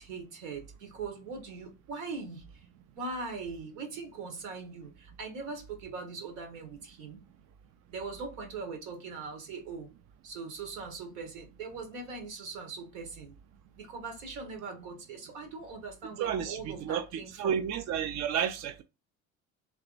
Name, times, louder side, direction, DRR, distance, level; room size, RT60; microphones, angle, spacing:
voice 1, 0.0-2.4 3.0-4.9 5.2-7.2 7.9-9.9 10.2-13.3 13.8-17.6, right 4 dB, 75° right, 1.7 m, -41 dB
voice 2, 16.2-17.1 17.4-18.8, right 8 dB, 45° right, 0.5 m, -31 dB
3.5 x 2.9 x 3.9 m
hypercardioid pair, 75°, 39 cm